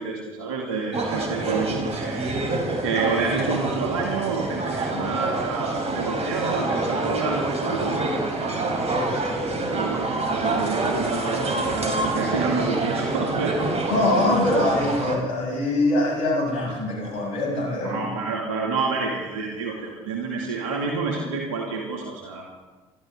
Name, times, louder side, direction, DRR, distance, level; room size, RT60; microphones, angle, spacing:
voice 1, 0.0-2.4 2.8-8.1 8.4-8.8 9.7-13.7 17.8-22.4, right 4 dB, 80° right, -1 dB, 2.5 m, -28 dB
sound 1, 0.9-15.2, right 2 dB, 40° right, 3.7 m, -27 dB
voice 2, 13.9-18.2, left 1 dB, 75° left, -3 dB, 6.8 m, -23 dB
25.0 x 13.0 x 3.8 m, 1.2 s
hypercardioid pair, 60°, 17 cm